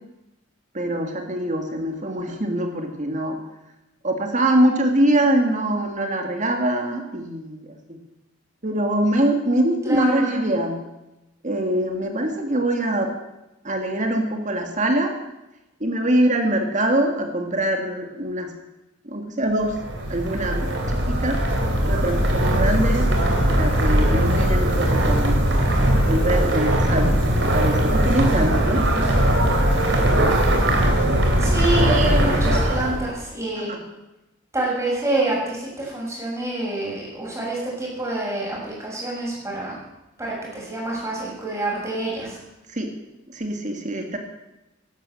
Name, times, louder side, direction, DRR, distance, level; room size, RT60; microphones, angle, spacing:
voice 1, 0.7-3.4 4.0-8.0 8.6-10.8 11.4-13.1 13.6-15.1 15.8-18.5 19.0-19.8 20.1-21.4 21.8-23.1 23.4-25.4 26.1-28.8 31.7-32.8 33.6-33.8 42.7-42.9 43.3-44.2, right 1 dB, 40° right, 4 dB, 2.0 m, -23 dB
voice 2, 9.8-10.2 31.4-33.8 34.5-39.8 40.2-42.4, right 2 dB, 15° right, -4 dB, 6.5 m, -27 dB
sound 1, 19.6-33.1, right 1 dB, 65° right, 3.2 m, -20 dB
12.0 x 11.5 x 7.7 m, 0.97 s
head